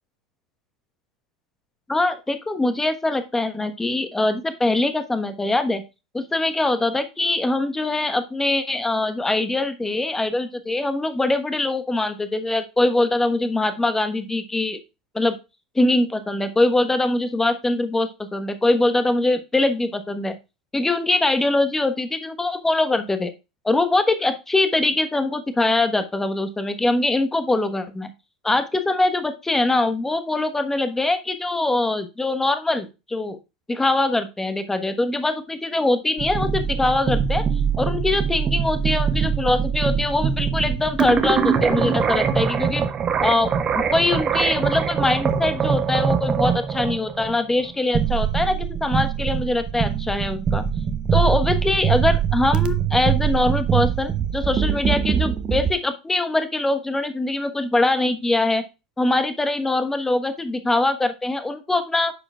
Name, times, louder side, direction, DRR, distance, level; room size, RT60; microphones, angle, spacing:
voice 1, 1.9-5.8 6.1-14.8 15.1-15.4 15.7-20.3 20.7-23.3 23.6-28.1 28.4-33.4 33.7-37.4 37.8-42.8 43.2-50.6 51.1-58.6 59.0-62.1, left 2 dB, 10° left, 9 dB, 1.2 m, -22 dB
sound 1, 36.2-55.7, right 7 dB, 30° right, 1.0 m, -23 dB
10.0 x 7.0 x 2.4 m, 0.26 s
figure-of-eight pair, 80°, 3 cm